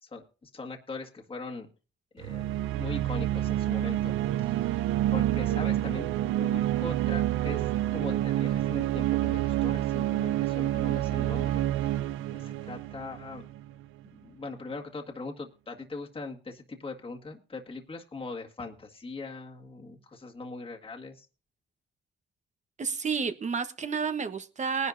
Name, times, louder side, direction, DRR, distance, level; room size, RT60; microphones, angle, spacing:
voice 1, 0.0-1.7 2.1-12.0 12.3-13.5 14.2-21.3, left 3 dB, 25° left, 0 dB, 1.8 m, -41 dB
sound 1, 2.2-13.7, right 13 dB, 85° right, 0.5 m, -28 dB
voice 2, 22.8-24.9, right 5 dB, 35° right, 9 dB, 1.2 m, -30 dB
19.5 x 11.0 x 2.7 m, 0.35 s
cardioid pair, 90°, 20 cm